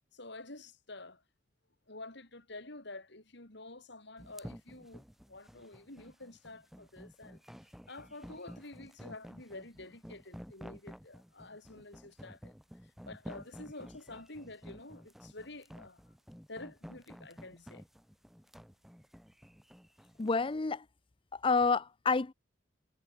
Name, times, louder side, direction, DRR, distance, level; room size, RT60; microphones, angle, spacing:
voice 1, 0.1-1.2 1.9-5.0 5.3-7.4 7.9-12.5 12.8-16.0 16.5-17.8, left 2 dB, 60° left, 4.4 m, -49 dB
sound 1, 4.2-20.4, equal, ahead, 2.6 m, -51 dB
voice 2, 20.2-20.8 21.3-22.3, left 4 dB, 25° left, 0.5 m, -29 dB
head